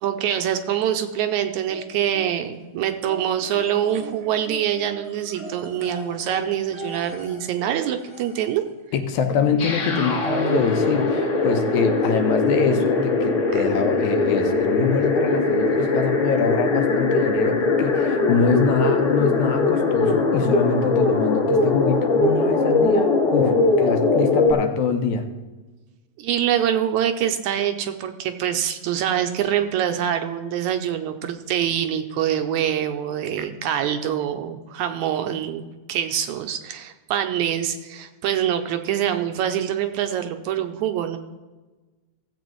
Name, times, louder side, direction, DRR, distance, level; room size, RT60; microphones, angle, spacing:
voice 1, 0.0-8.6 13.5-13.6 26.2-41.2, right 10 dB, 75° right, 7 dB, 1.9 m, -25 dB
sound 1, 1.7-2.6 3.1-8.7 10.0-10.1 10.4-10.5, right 1 dB, 10° left, 1.0 m, -40 dB
voice 2, 8.9-25.3, left 5 dB, 75° left, 6 dB, 2.0 m, -24 dB
sound 2, 9.6-24.5, left 3 dB, 45° left, 1.7 m, -21 dB
16.0 x 7.8 x 3.1 m, 1.2 s
omnidirectional pair, 3.6 m